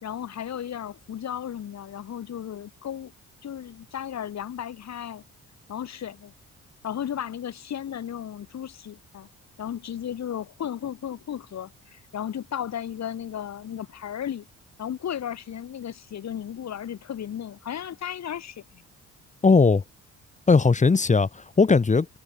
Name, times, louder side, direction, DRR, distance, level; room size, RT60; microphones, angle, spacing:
voice 1, 0.0-3.1 3.4-5.2 5.7-6.3 6.8-9.3 9.6-14.4 14.8-18.8, left 9 dB, 60° left, 4.5 m, -34 dB
voice 2, 19.4-19.8 20.5-22.1, left 4 dB, 25° left, 1.3 m, -18 dB
cardioid pair, 90°, 30 cm